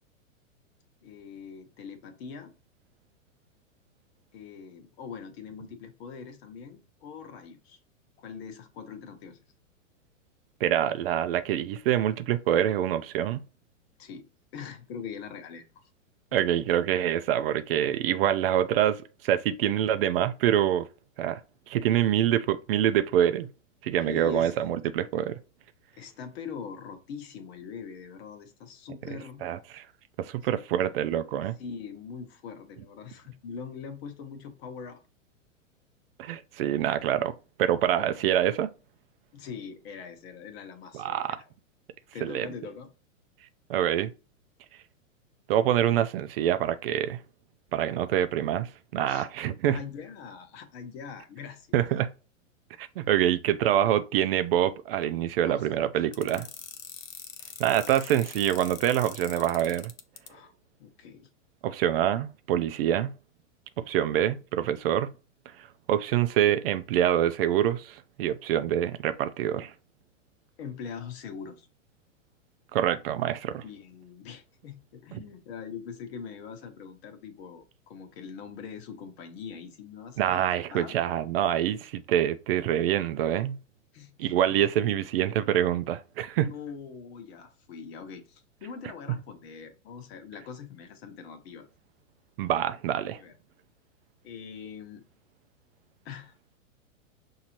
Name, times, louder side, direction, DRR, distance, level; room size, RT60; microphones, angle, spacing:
voice 1, 1.0-2.5 4.3-7.8 8.2-9.4 14.0-15.8 24.0-24.5 26.0-29.4 31.6-35.0 38.0-38.1 39.3-41.5 42.1-42.9 49.1-49.2 49.7-51.7 55.4-55.7 60.3-60.5 60.8-61.3 70.6-71.7 73.6-80.9 83.9-84.4 86.4-91.7 93.1-93.3 94.2-95.1 96.0-96.3, left 6 dB, 50° left, 1.1 m, -42 dB
voice 2, 10.6-13.4 16.3-20.9 21.2-21.4 21.7-23.5 23.8-25.3 29.4-29.8 30.2-31.6 36.2-37.3 37.6-38.7 40.9-41.4 42.2-42.5 43.7-44.1 45.5-47.2 47.7-49.8 51.7-52.1 52.8-56.5 57.6-59.9 61.6-63.1 63.9-65.1 65.6-69.7 72.7-73.6 75.1-75.2 80.2-83.6 84.2-86.5 92.4-93.2, right 11 dB, 50° right, 0.4 m, -26 dB
sound 1, 56.1-60.3, left 8 dB, 80° left, 0.8 m, -43 dB
5.9 x 2.8 x 2.9 m
hypercardioid pair, 115°, 39 cm